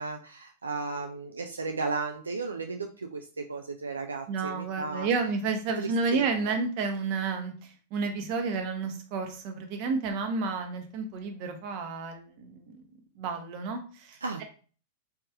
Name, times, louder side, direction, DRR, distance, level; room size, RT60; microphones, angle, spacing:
voice 1, 0.0-5.1 5.8-6.2 14.2-14.4, right 3 dB, 85° right, 4 dB, 0.3 m, -34 dB
voice 2, 4.3-12.8 13.2-14.4, right 4 dB, 50° right, 5 dB, 0.8 m, -31 dB
3.2 x 2.9 x 2.3 m, 0.39 s
figure-of-eight pair, 100°, 0 cm